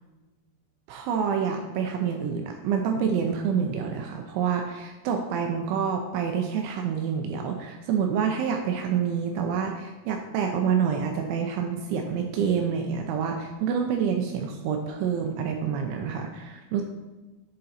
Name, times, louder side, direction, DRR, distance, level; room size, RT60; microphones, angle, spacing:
voice 1, 0.9-16.8, right 7 dB, 80° right, 3 dB, 2.8 m, -27 dB
7.7 x 6.7 x 4.1 m, 1.2 s
omnidirectional pair, 5.9 m